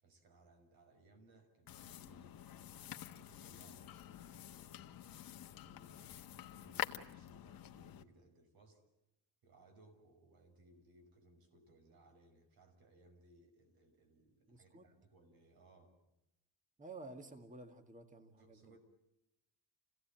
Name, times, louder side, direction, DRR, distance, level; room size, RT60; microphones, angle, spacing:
voice 1, 0.0-2.7 3.1-8.8 9.4-16.0 18.4-18.8, right 2 dB, 55° right, 6 dB, 6.0 m, -65 dB
sound 1, 1.7-8.0, left 11 dB, 50° left, 1.4 m, -48 dB
voice 2, 14.5-14.9 16.8-18.8, right 2 dB, 20° right, 7 dB, 2.0 m, -52 dB
29.0 x 17.0 x 9.1 m, 0.90 s
cardioid pair, 150°, 43 cm